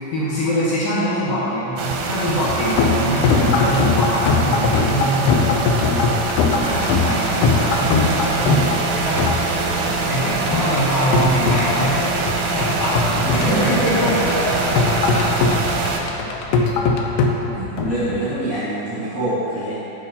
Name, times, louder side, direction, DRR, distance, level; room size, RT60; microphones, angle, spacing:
voice 1, 0.1-5.9 6.6-9.2 10.1-12.1 12.5-15.3, equal, 65° left, -10 dB, 2.6 m, -24 dB
sound 1, 1.8-16.0, right 3 dB, 90° right, 3.2 m, -24 dB
sound 2, 2.5-18.2, left 4 dB, 80° left, 2.5 m, -21 dB
voice 2, 3.3-3.6 13.2-14.2 17.5-19.8, right 1 dB, 40° right, -13 dB, 1.7 m, -25 dB
8.5 x 6.2 x 5.4 m, 3.0 s
omnidirectional pair, 5.4 m